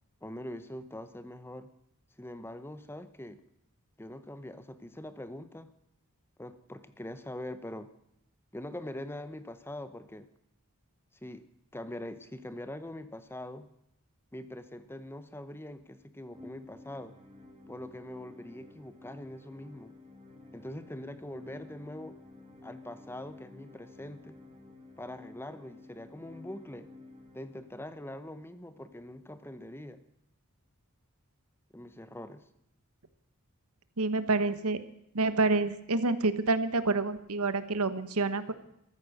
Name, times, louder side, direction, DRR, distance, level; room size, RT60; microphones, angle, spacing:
voice 1, 0.2-1.7 2.2-3.4 4.0-5.7 6.4-7.9 8.5-10.3 11.2-11.5 11.7-13.7 14.3-17.2 17.7-19.9 20.5-22.2 22.6-24.4 25.0-26.9 27.3-30.0 31.7-32.5, left 1 dB, 10° left, 12 dB, 0.8 m, -43 dB
sound 1, 16.3-28.3, left 2 dB, 25° right, 2.9 m, -52 dB
voice 2, 34.0-34.8 35.1-38.5, right 3 dB, 80° right, 12 dB, 1.2 m, -28 dB
14.0 x 14.0 x 6.5 m, 0.79 s
head